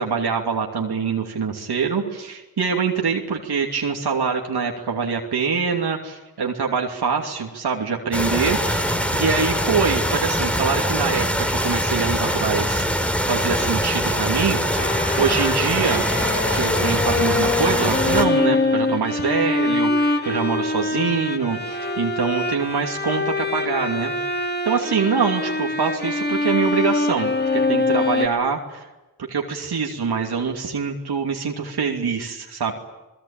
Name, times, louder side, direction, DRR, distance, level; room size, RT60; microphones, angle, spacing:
voice 1, 0.0-12.8 13.3-14.9 15.2-16.1 16.5-24.1 24.6-28.9 29.3-32.7, right 5 dB, 80° right, 1 dB, 2.8 m, -24 dB
sound 1, 8.1-18.2, equal, 5° left, 3.4 m, -23 dB
Bowed string instrument, 14.8-28.3, left 2 dB, 25° left, 2.5 m, -24 dB
27.5 x 20.0 x 8.9 m, 1.0 s
cardioid pair, 55°, 39 cm